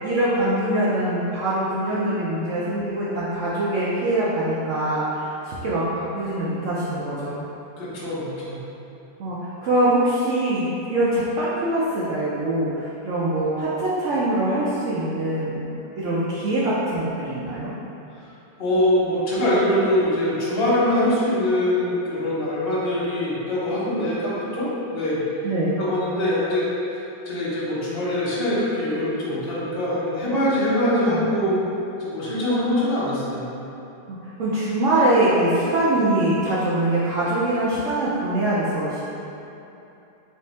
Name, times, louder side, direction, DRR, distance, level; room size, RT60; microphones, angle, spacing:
voice 1, 0.0-7.4 9.2-15.6 16.0-17.7 25.4-25.8 31.1-31.2 31.5-31.6 34.1-39.1, right 1 dB, 85° right, -9 dB, 0.6 m, -23 dB
voice 2, 7.8-8.6 18.6-25.2 25.8-27.0 27.2-31.6 32.0-33.4, left 1 dB, 40° left, -8 dB, 1.0 m, -23 dB
3.6 x 2.7 x 4.1 m, 2.9 s
omnidirectional pair, 2.0 m